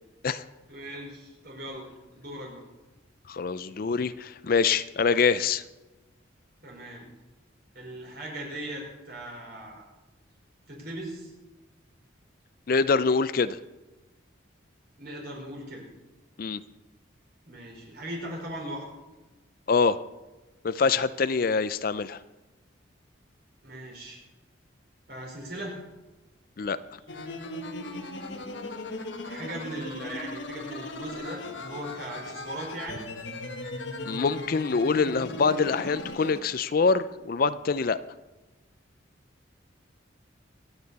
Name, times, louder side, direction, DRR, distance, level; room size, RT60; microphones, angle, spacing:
voice 1, 0.7-2.6 6.6-7.1 7.7-9.8 10.7-11.3 15.0-15.8 17.4-18.8 23.6-24.2 25.1-25.8 29.2-33.0, right 1 dB, 55° right, -1 dB, 4.6 m, -39 dB
voice 2, 3.3-5.6 12.7-13.6 16.4-16.6 19.7-20.0 20.6-22.2 26.6-26.8 34.1-38.0, left 5 dB, 50° left, 15 dB, 0.4 m, -25 dB
sound 1, 27.1-36.4, left 2 dB, 70° left, 1.3 m, -38 dB
24.5 x 8.8 x 4.1 m, 1.1 s
head